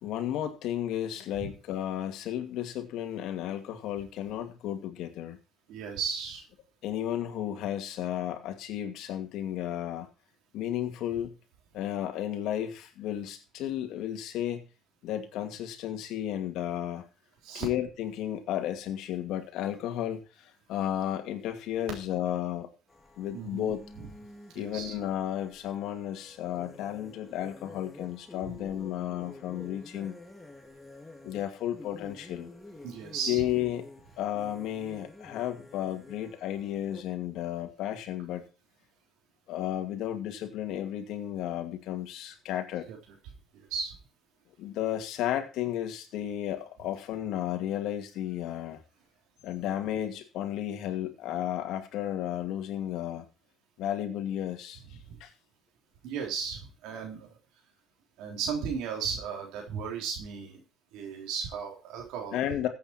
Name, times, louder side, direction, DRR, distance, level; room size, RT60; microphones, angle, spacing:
voice 1, 0.0-5.4 6.8-10.1 10.5-11.3 11.7-14.6 15.0-17.0 17.5-22.7 23.2-23.8 24.5-30.1 31.2-32.5 33.3-33.9 34.2-38.5 39.5-42.9 44.6-48.8 49.4-53.3 53.8-55.3 62.3-62.7, left 11 dB, 75° left, 5 dB, 2.4 m, -33 dB
voice 2, 5.7-6.4 17.4-17.6 23.3-23.7 24.6-24.9 28.5-28.6 32.8-33.4 42.9-43.0 43.7-43.9 55.1-55.2 56.0-57.3 58.2-60.6 60.9-62.4, right 6 dB, 85° right, 0 dB, 3.5 m, -35 dB
sound 1, 22.9-37.0, left 2 dB, 10° left, 2.5 m, -50 dB
14.5 x 8.4 x 4.4 m, 0.33 s
cardioid pair, 95°, 0 cm